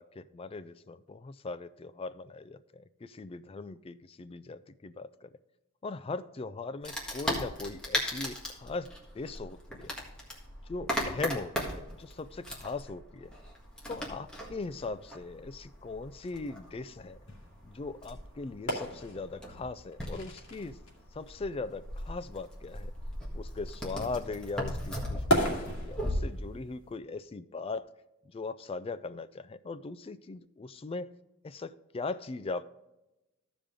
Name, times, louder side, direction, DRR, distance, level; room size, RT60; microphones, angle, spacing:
voice 1, 0.0-5.3 5.8-8.9 9.1-9.9 10.7-13.3 13.9-17.2 17.6-20.8 21.1-22.9 23.3-27.9 28.3-31.1 31.4-32.7, left 3 dB, 25° left, 13 dB, 0.3 m, -39 dB
Wood, 6.8-26.1, equal, 5° left, 1.6 m, -38 dB
sound 1, 13.2-27.0, right 1 dB, 60° left, 2.1 m, -38 dB
14.5 x 5.1 x 3.7 m, 0.99 s
head